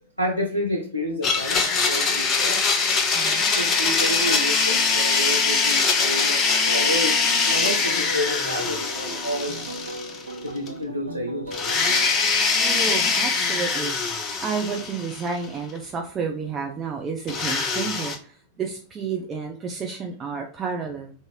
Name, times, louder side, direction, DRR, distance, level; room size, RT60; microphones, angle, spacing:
voice 1, 0.2-2.6 3.5-7.2 7.5-9.6 10.4-11.6, equal, 90° left, 2 dB, 0.5 m, -29 dB
Domestic sounds home sounds, 1.2-10.4 10.7-10.8 11.5-15.5 17.3-18.2, left 4 dB, 30° left, 0.6 m, -23 dB
voice 2, 3.1-3.5 12.5-14.0 14.4-21.1, right 5 dB, 25° right, 2 dB, 0.4 m, -31 dB
sound 1, 6.6-12.0, right 1 dB, 85° right, 0.5 m, -36 dB
3.6 x 2.6 x 3.0 m, 0.43 s
figure-of-eight pair, 90°, 0 cm